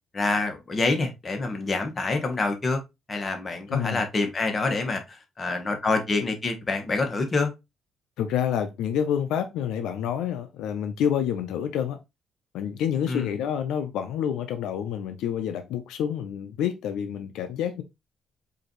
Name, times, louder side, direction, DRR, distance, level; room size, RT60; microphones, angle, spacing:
voice 1, 0.1-2.8 3.1-7.5 13.1-13.3, left 3 dB, 35° left, 1.2 m, -26 dB
voice 2, 3.7-4.0 8.2-12.0 12.5-17.8, left 9 dB, 90° left, 0.4 m, -28 dB
4.7 x 2.6 x 3.0 m
cardioid pair, 90°, 0 cm